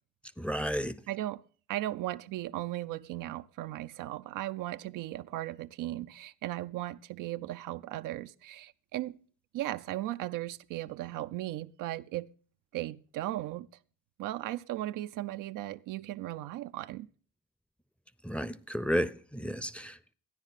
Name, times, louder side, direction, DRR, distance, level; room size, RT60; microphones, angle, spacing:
voice 1, 0.4-1.0 18.2-20.1, equal, 5° left, 0.6 m, -32 dB
voice 2, 1.1-1.4 1.7-9.2 9.5-12.3 12.7-13.7 14.2-17.1, right 15 dB, 70° right, 0.5 m, -37 dB
14.0 x 9.8 x 4.0 m
supercardioid pair, 50°, 33 cm